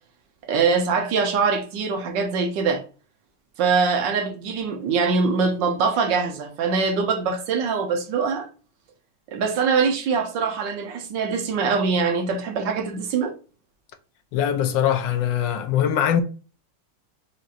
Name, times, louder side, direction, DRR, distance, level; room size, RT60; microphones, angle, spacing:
voice 1, 0.5-2.8 3.6-8.5 9.3-13.3, right 5 dB, 80° right, 1.4 m, -23 dB
voice 2, 14.3-16.2, left 9 dB, 80° left, 1.3 m, -22 dB
5.0 x 2.8 x 2.4 m
omnidirectional pair, 2.0 m